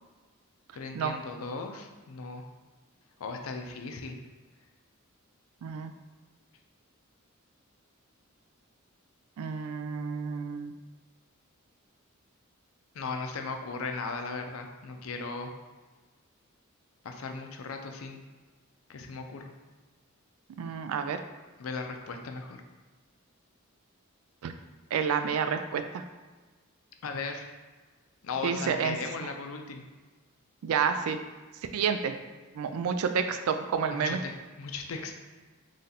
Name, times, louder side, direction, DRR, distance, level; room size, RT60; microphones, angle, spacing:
voice 1, 0.7-2.4 3.2-4.1 12.9-15.5 17.0-18.2 18.9-19.5 21.6-22.6 27.0-27.5 28.2-29.8 33.9-35.1, left 4 dB, 75° left, 4 dB, 0.5 m, -37 dB
voice 2, 5.6-5.9 9.4-10.7 20.6-21.2 24.4-24.5 24.9-26.0 28.4-29.0 30.6-31.2 31.7-32.1 32.5-34.2, right 6 dB, 85° right, 8 dB, 0.3 m, -29 dB
3.2 x 2.7 x 3.9 m, 1.3 s
head